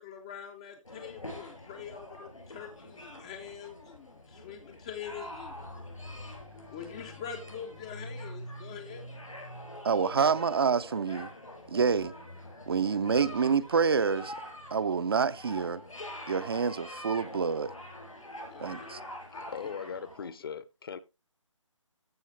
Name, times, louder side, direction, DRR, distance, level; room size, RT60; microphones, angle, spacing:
voice 1, 0.0-5.7 6.7-9.0 18.5-18.8 19.3-19.5, left 8 dB, 10° left, 0.4 m, -44 dB
sound 1, 0.8-20.3, left 1 dB, 85° left, 5.3 m, -45 dB
voice 2, 9.8-11.3 11.7-12.1 12.7-14.3 14.7-15.8 16.3-17.7 18.6-19.0, right 6 dB, 50° right, 0.5 m, -27 dB
voice 3, 19.4-21.0, left 6 dB, 45° left, 0.7 m, -39 dB
14.0 x 5.5 x 3.2 m
figure-of-eight pair, 150°, 17 cm